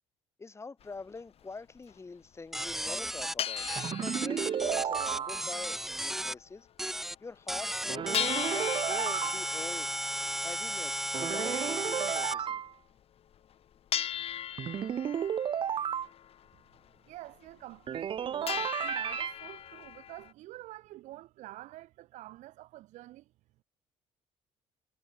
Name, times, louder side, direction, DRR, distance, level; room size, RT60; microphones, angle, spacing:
voice 1, 0.4-6.7 7.2-9.9 10.4-12.6, left 4 dB, 20° left, 4.3 m, -44 dB
sound 1, 0.8-0.9 1.5-1.6 1.8-1.9 2.7-2.8 3.0-6.1 6.4-6.5 6.9-7.0 7.4-7.5 8.1-12.7 13.3-13.5 13.9-16.9 17.3-17.4 17.7-18.2 18.5-20.3, left 10 dB, 50° left, 2.7 m, -39 dB
sound 2, 2.5-6.3 6.8-7.1 7.5-12.3, right 1 dB, 5° right, 0.4 m, -35 dB
sound 3, 3.8-5.7 7.9-9.4 11.1-12.7 14.6-16.1 17.9-19.3, right 9 dB, 45° right, 1.0 m, -33 dB
voice 2, 17.1-23.2, right 16 dB, 70° right, 1.3 m, -47 dB
cardioid pair, 105°, 13 cm